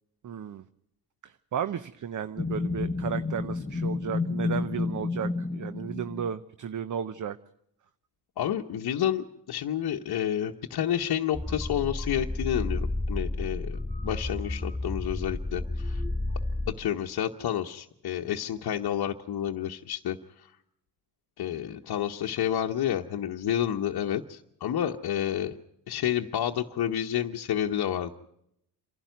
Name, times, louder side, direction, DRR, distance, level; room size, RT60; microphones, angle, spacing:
voice 1, 0.2-0.6 1.2-7.4, right 8 dB, 50° right, 13 dB, 0.8 m, -34 dB
sound 1, 2.4-6.3, left 3 dB, 20° left, 1.0 m, -30 dB
voice 2, 8.4-16.0 16.7-20.5 21.4-25.6 25.9-28.1, left 10 dB, 65° left, 1 dB, 1.0 m, -30 dB
sound 2, 11.3-16.7, left 2 dB, ahead, 2.4 m, -31 dB
26.5 x 12.0 x 9.2 m, 0.77 s
cardioid pair, 80°, 40 cm